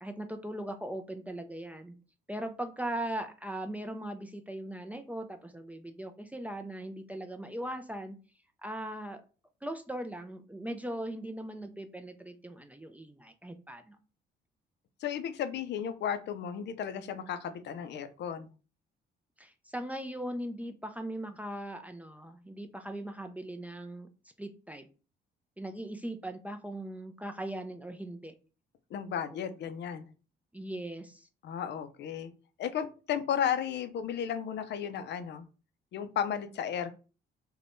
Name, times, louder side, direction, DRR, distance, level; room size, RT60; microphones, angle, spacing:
voice 1, 0.0-2.0 2.3-8.2 8.6-9.2 9.6-14.0 19.4-24.1 24.4-24.9 25.6-28.3 30.5-31.3, right 1 dB, 5° right, 6 dB, 0.3 m, -39 dB
voice 2, 15.0-18.5 28.9-30.1 31.4-32.3 32.6-35.5 35.9-36.9, left 8 dB, 60° left, 10 dB, 0.4 m, -34 dB
3.3 x 2.2 x 2.5 m, 0.35 s
cardioid pair, 90°, 20 cm